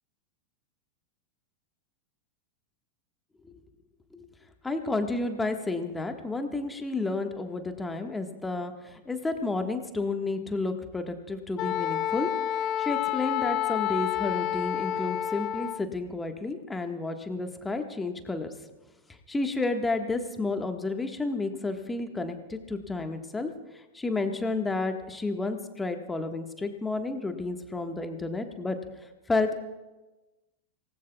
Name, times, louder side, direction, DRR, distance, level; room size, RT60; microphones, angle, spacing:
voice 1, 4.6-12.3 12.8-18.5 19.3-23.5 23.9-28.8 29.3-29.5, left 3 dB, 10° left, 6 dB, 1.5 m, -31 dB
Wind instrument woodwind instrument, 11.6-15.8, left 11 dB, 35° left, 0.5 m, -29 dB
25.5 x 19.0 x 2.4 m, 1.1 s
figure-of-eight pair, 90°, 0 cm